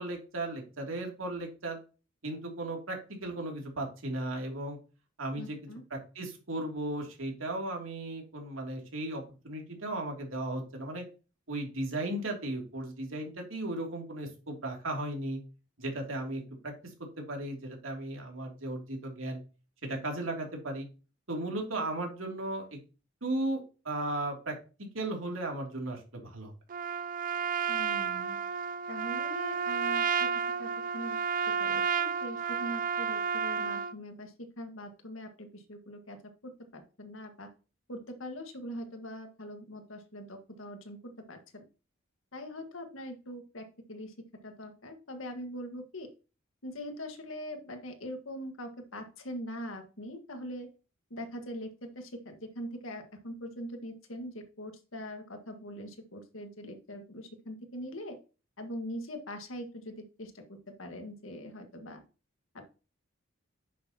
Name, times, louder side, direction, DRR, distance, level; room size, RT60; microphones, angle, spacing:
voice 1, 0.0-1.8 2.2-4.8 5.2-5.6 5.9-11.0 11.5-15.4 15.8-16.7 17.2-19.4 19.8-20.9 21.3-22.8 23.2-24.5 24.8-26.5, right 1 dB, 85° right, 1 dB, 2.9 m, -36 dB
voice 2, 5.4-5.8 27.7-28.4 28.9-31.2 31.6-36.2 36.4-37.5 37.9-41.7 42.3-44.1 44.4-46.1 46.6-50.7 51.1-58.2 58.6-62.0 62.5-62.6, equal, 80° left, 5 dB, 1.7 m, -42 dB
Trumpet, 26.7-33.9, right 6 dB, 45° right, 0.5 m, -31 dB
10.0 x 6.8 x 2.9 m, 0.34 s
head